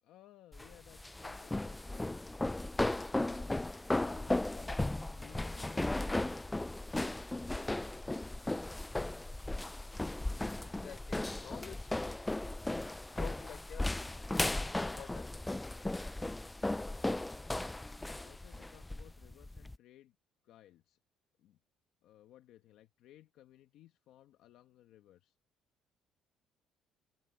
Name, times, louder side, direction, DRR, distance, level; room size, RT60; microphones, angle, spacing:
voice 1, 0.0-2.1 4.0-6.6 18.0-20.2 20.4-21.0 21.4-21.6 22.0-25.3, left 13 dB, 70° left, 1.3 m, -60 dB
sound 1, 0.5-19.8, left 2 dB, 10° left, 0.3 m, -36 dB
voice 2, 10.6-12.0 13.1-13.9 14.8-15.3, left 10 dB, 50° left, 3.9 m, -49 dB
cardioid pair, 145°, 0 cm